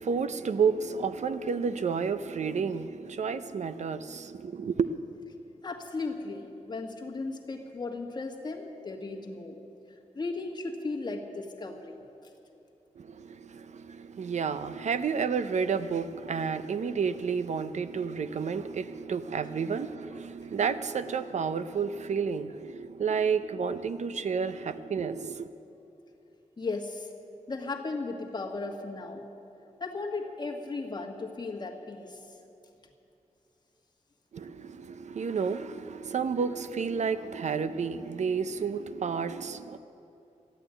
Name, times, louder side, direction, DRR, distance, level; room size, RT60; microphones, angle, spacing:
voice 1, 0.0-5.0 13.0-25.5 34.3-39.8, right 6 dB, 65° right, 0.5 m, -31 dB
voice 2, 5.6-9.6 10.1-12.0 26.6-27.1 27.5-29.3 29.8-32.2, left 3 dB, 35° left, 1.5 m, -36 dB
13.5 x 9.1 x 9.7 m
wide cardioid pair, 115°, 13 cm